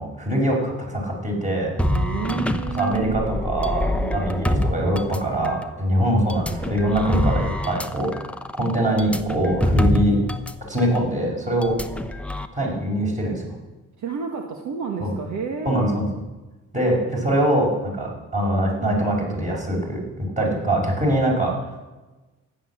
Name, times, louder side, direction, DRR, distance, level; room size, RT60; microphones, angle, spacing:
voice 1, 0.0-1.7 2.8-8.1 8.6-10.2 10.7-11.8 12.5-13.5 15.0-15.1 15.7-16.1 16.7-21.5, right 1 dB, 25° right, -1 dB, 5.7 m, -23 dB
sound 1, 1.8-5.7 6.3-10.5 10.8-11.0 11.6-12.5, left 1 dB, 5° left, 0.8 m, -25 dB
voice 2, 1.9-3.3 3.9-4.7 14.0-16.0, right 6 dB, 70° right, 3 dB, 1.6 m, -31 dB
14.5 x 10.0 x 7.2 m, 1.2 s
cardioid pair, 90°, 30 cm